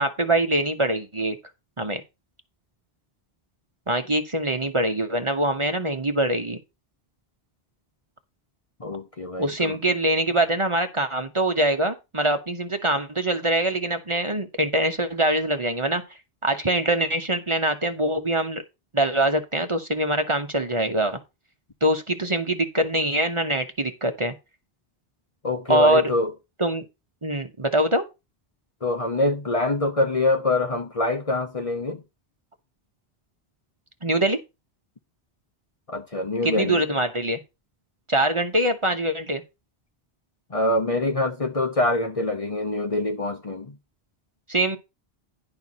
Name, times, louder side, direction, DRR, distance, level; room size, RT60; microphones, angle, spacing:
voice 1, 0.0-1.4 1.8-2.0 3.9-6.6 9.4-16.0 16.4-18.6 18.9-21.2 21.8-24.3 25.7-26.1 26.6-26.8 27.2-28.0 34.0-34.4 36.4-37.4 38.1-39.4 44.5-44.8, right 1 dB, 30° right, 1.1 m, -23 dB
voice 2, 8.8-9.8 25.4-26.3 28.8-32.0 35.9-36.8 40.5-43.7, left 2 dB, 35° left, 1.0 m, -25 dB
11.0 x 4.6 x 5.5 m
omnidirectional pair, 1.0 m